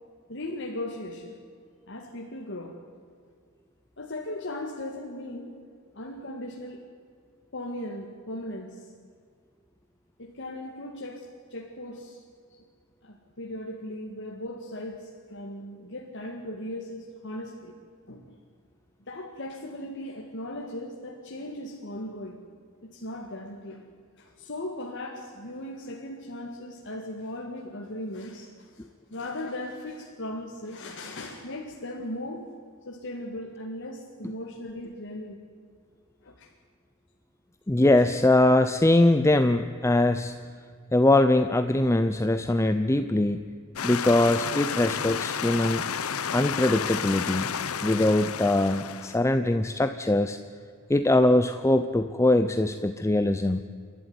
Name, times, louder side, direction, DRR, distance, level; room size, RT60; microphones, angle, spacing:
voice 1, 0.3-1.4 1.9-2.8 4.0-5.5 5.9-6.8 7.5-8.9 10.2-12.2 12.5-12.6 13.0-17.7 18.1-18.4 19.1-22.4 22.8-23.9 24.2-32.4 32.8-35.4 36.2-36.5 38.0-38.2, left 1 dB, 60° left, 1 dB, 1.9 m, -38 dB
voice 2, 37.7-40.3 40.9-43.4 43.8-45.8 46.3-47.5 47.8-50.4 50.9-53.6, left 1 dB, 15° left, 10 dB, 0.6 m, -22 dB
sound 1, 43.8-49.2, left 7 dB, 90° left, 0.9 m, -31 dB
28.5 x 12.0 x 9.6 m, 2.1 s
head